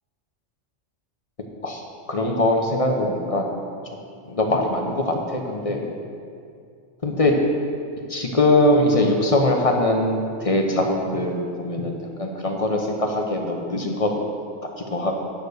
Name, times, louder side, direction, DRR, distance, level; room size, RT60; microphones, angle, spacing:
voice 1, 2.1-3.4 4.3-5.8 7.0-7.3 8.1-14.1 14.9-15.1, left 1 dB, 30° left, 2 dB, 0.9 m, -22 dB
9.4 x 6.6 x 6.5 m, 2.4 s
omnidirectional pair, 1.2 m